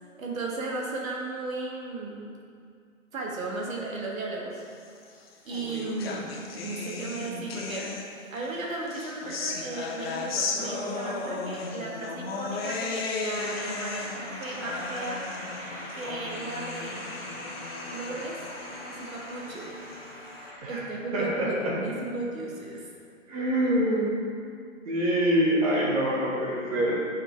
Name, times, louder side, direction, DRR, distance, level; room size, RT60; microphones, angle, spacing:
voice 1, 0.2-2.3 3.1-4.6 5.4-6.4 6.6-15.2 15.9-17.0 17.9-18.4 18.9-19.8 20.7-22.9, right 3 dB, 80° right, -2 dB, 1.7 m, -35 dB
sound 1, 5.0-8.4 8.9-20.3, left 4 dB, 45° left, 0.9 m, -36 dB
sound 2, 13.3-20.6, equal, 10° right, 0.7 m, -41 dB
voice 2, 21.1-21.7 23.3-24.2 24.8-26.9, equal, 25° right, -5 dB, 1.4 m, -25 dB
8.5 x 5.1 x 3.3 m, 2.3 s
hypercardioid pair, 165°, 40 cm